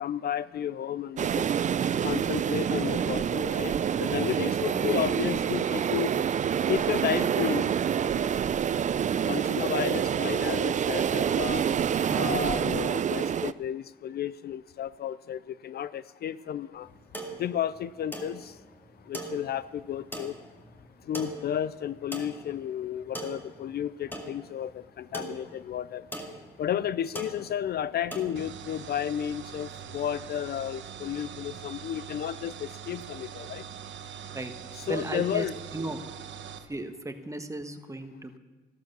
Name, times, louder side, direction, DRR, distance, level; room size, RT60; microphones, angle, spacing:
voice 1, 0.0-1.4 2.0-6.1 6.7-7.7 9.2-11.6 12.1-16.9 17.4-18.5 19.1-20.4 21.1-26.0 26.6-33.6 34.7-35.6, left 10 dB, 55° left, 17 dB, 0.4 m, -32 dB
sound 1, 1.2-13.5, right 8 dB, 40° right, 0.4 m, -27 dB
voice 2, 12.1-12.4 34.3-34.5 34.9-35.5 35.7-36.0 36.7-38.4, right 2 dB, 15° right, 7 dB, 1.3 m, -35 dB
sound 2, 16.8-28.3, right 1 dB, 10° left, 2.0 m, -42 dB
sound 3, 28.4-36.7, right 8 dB, 70° right, 1.0 m, -43 dB
14.5 x 12.0 x 6.9 m, 1.3 s
cardioid pair, 90°, 20 cm